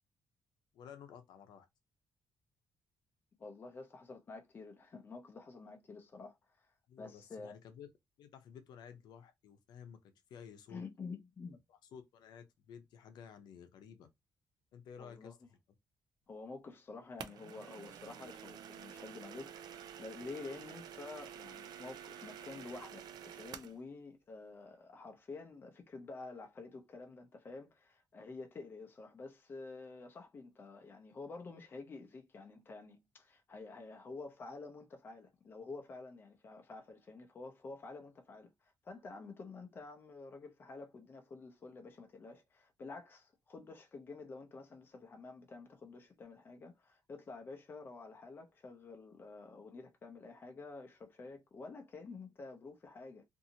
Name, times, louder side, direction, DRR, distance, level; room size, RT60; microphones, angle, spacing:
voice 1, 0.7-1.7 6.9-7.9 8.2-10.8 11.7-14.1 14.7-15.6, left 7 dB, 75° left, 0.7 m, -53 dB
voice 2, 3.4-6.7 7.0-7.6 10.7-11.6 15.0-15.4 16.3-53.2, left 3 dB, 30° left, 0.6 m, -49 dB
sound 1, 17.2-23.8, right 9 dB, 70° right, 0.4 m, -49 dB
2.7 x 2.6 x 2.7 m
cardioid pair, 135°, 7 cm